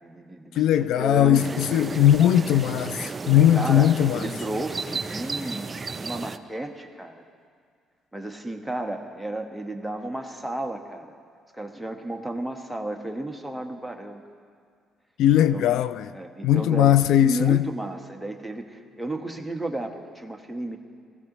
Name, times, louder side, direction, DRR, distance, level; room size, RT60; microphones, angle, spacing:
voice 1, 0.0-1.4 3.5-7.2 8.1-11.1 11.5-14.2 15.5-15.7 16.1-20.8, right 1 dB, 5° right, 1.3 m, -33 dB
voice 2, 0.6-4.3 15.2-16.1 16.4-17.7, left 11 dB, 75° left, 0.3 m, -19 dB
sound 1, 1.3-6.4, right 4 dB, 30° right, 0.5 m, -33 dB
20.0 x 15.5 x 3.0 m
supercardioid pair, 80°, 0 cm